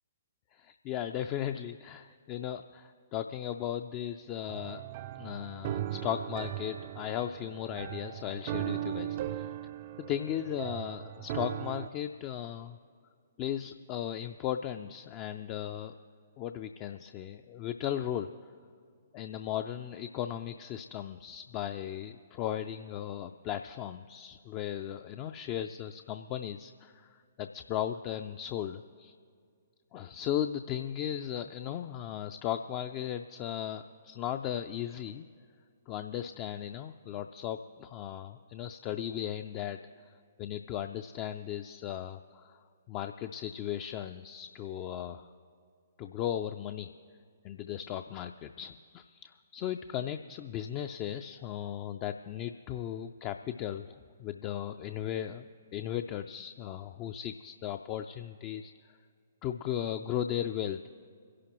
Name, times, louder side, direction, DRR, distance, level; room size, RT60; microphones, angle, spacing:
voice 1, 0.5-4.8 5.2-9.5 10.0-12.8 13.4-15.9 16.4-18.3 19.1-29.1 29.9-35.3 35.9-39.8 40.4-45.3 46.0-46.9 47.4-55.5 55.7-58.7 59.4-60.9, left 10 dB, 30° left, 8 dB, 0.4 m, -36 dB
sound 1, 4.5-11.9, right 12 dB, 40° right, 0.4 m, -38 dB
26.5 x 11.0 x 3.0 m, 2.2 s
figure-of-eight pair, 125°, 0 cm